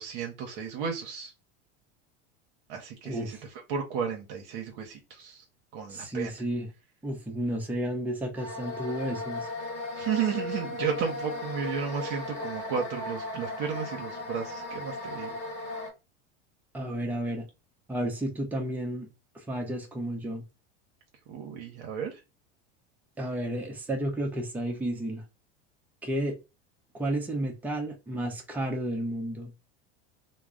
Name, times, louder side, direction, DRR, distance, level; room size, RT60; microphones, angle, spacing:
voice 1, 0.0-1.3 2.7-3.4 3.7-5.4 5.7-6.3 9.9-15.4 21.3-22.2, right 7 dB, 65° right, 0.7 m, -33 dB
voice 2, 3.0-3.4 5.9-6.7 7.0-9.5 16.7-17.5 17.9-19.1 19.3-20.4 23.2-25.2 26.0-26.4 26.9-29.5, right 1 dB, 5° right, 0.5 m, -32 dB
sound 1, 8.4-15.9, left 2 dB, 20° left, 1.2 m, -36 dB
2.2 x 2.0 x 3.6 m
supercardioid pair, 115°, 31 cm